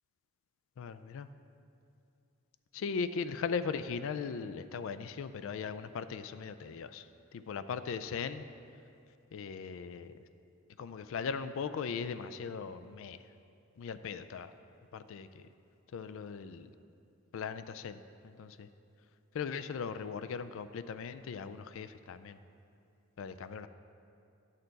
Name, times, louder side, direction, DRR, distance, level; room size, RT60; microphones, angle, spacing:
voice 1, 0.8-1.3 2.7-7.1 7.3-8.4 9.3-10.1 10.8-13.2 13.8-14.5 14.9-15.5 15.9-16.7 17.3-18.7 19.3-22.4 23.2-23.7, left 6 dB, 70° left, 12 dB, 0.3 m, -38 dB
9.7 x 6.6 x 3.9 m, 2.6 s
head